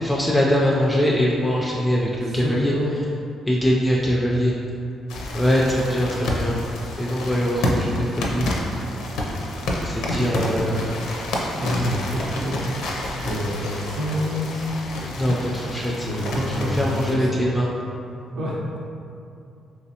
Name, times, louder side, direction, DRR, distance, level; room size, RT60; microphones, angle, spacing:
voice 1, 0.0-2.7 3.5-4.5 5.3-6.6 7.0-8.5 9.8-11.0 15.0-16.1 16.5-17.7, equal, 15° left, -4 dB, 0.4 m, -22 dB
voice 2, 2.4-2.9 10.1-10.5 11.6-12.8 13.2-14.6 15.7-17.4 18.3-18.6, equal, 60° right, -3 dB, 0.7 m, -27 dB
sound 1, 5.1-17.1, left 1 dB, 85° left, 0.5 m, -29 dB
3.2 x 3.0 x 2.8 m, 2.6 s
cardioid pair, 90°, 0 cm